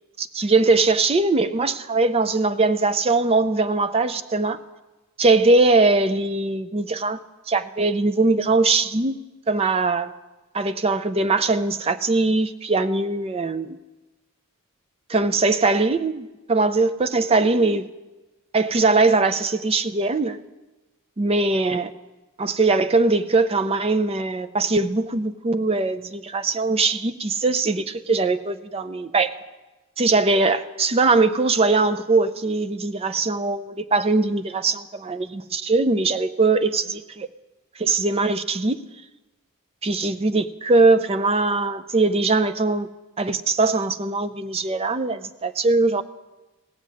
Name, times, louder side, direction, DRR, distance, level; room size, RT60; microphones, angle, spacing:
voice 1, 0.2-4.6 5.2-7.2 7.5-9.1 9.5-10.1 10.5-13.8 15.1-17.9 18.5-20.4 21.2-21.9 22.4-29.3 30.0-37.3 37.8-38.8 39.8-42.9 43.2-46.0, right 3 dB, 25° right, 0.4 m, -21 dB
17.5 x 7.5 x 6.1 m
head